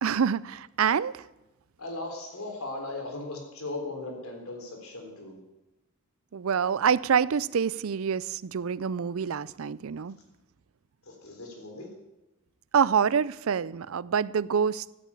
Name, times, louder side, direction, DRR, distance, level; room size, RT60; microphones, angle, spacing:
voice 1, 0.0-1.3 6.3-10.2 12.7-14.8, right 7 dB, 75° right, 0.5 m, -26 dB
voice 2, 1.8-5.4 11.1-11.9, left 2 dB, 80° left, 3.8 m, -38 dB
14.5 x 8.5 x 8.3 m
head